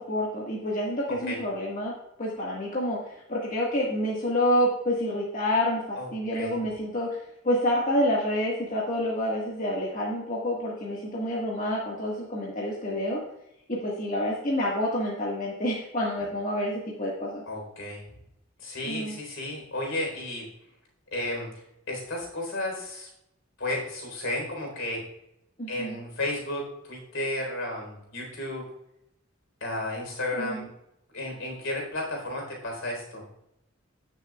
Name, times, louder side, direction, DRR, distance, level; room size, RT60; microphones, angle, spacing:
voice 1, 0.1-1.9 2.2-7.1 7.4-13.2 13.7-17.4 18.8-19.2 25.6-25.9 30.3-30.7, equal, 40° left, -4 dB, 1.7 m, -28 dB
voice 2, 6.0-6.6 17.5-18.0 18.6-20.5 21.1-21.5 21.9-23.1 23.6-25.0 25.7-28.6 29.6-30.6 31.1-33.2, left 1 dB, 70° left, 0 dB, 4.0 m, -33 dB
17.0 x 6.6 x 2.4 m, 0.81 s
head